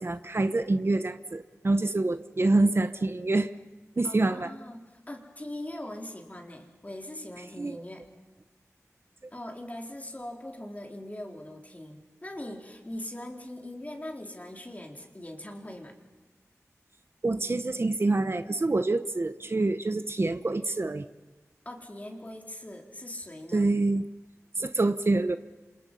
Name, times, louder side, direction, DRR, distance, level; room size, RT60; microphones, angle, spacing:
voice 1, 0.0-3.5 4.0-4.5 7.6-7.8 9.2-9.3 17.2-21.1 23.5-24.0 24.6-25.4, right 2 dB, 45° right, 10 dB, 0.9 m, -26 dB
voice 2, 4.0-8.1 9.3-15.9 21.6-23.7, left 1 dB, 25° left, 2 dB, 4.1 m, -41 dB
29.5 x 26.5 x 5.6 m, 1.3 s
wide cardioid pair, 75°, 6 cm